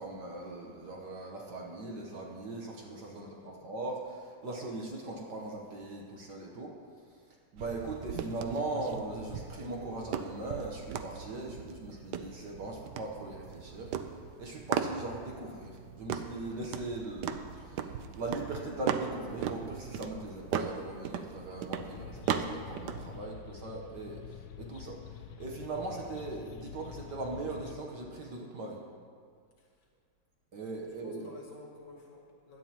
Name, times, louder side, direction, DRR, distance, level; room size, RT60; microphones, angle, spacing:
voice 1, 0.0-6.7 7.5-13.9 14.4-25.0 25.4-28.8 30.5-31.2, right 2 dB, 60° right, -1 dB, 1.5 m, -40 dB
voice 2, 3.1-3.7 29.6-29.9 30.8-32.6, left 2 dB, 55° left, -3 dB, 2.2 m, -53 dB
sound 1, 7.6-23.2, right 8 dB, 80° right, 0.9 m, -38 dB
sound 2, 21.7-27.7, left 8 dB, 75° left, 1.3 m, -47 dB
16.5 x 10.5 x 2.9 m, 2.1 s
omnidirectional pair, 2.4 m